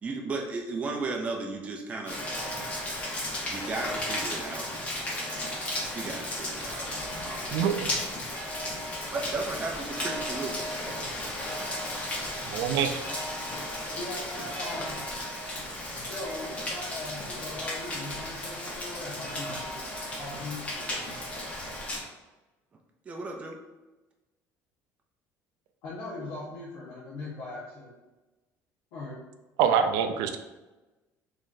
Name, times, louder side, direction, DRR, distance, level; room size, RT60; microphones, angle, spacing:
voice 1, 0.0-2.2 3.5-4.7 5.9-7.7 9.1-10.8 23.1-23.6, right 3 dB, 20° right, 1 dB, 0.4 m, -35 dB
Rain, 2.1-22.0, left 1 dB, 20° left, 0.8 m, -34 dB
voice 2, 12.4-13.0 29.6-30.4, right 7 dB, 85° right, 8 dB, 0.4 m, -25 dB
voice 3, 13.9-15.0 16.0-19.8 20.1-21.1 25.8-27.9 28.9-29.2, left 2 dB, 75° left, -8 dB, 1.0 m, -40 dB
3.7 x 3.2 x 2.6 m, 1.1 s
cardioid pair, 165°, 6 cm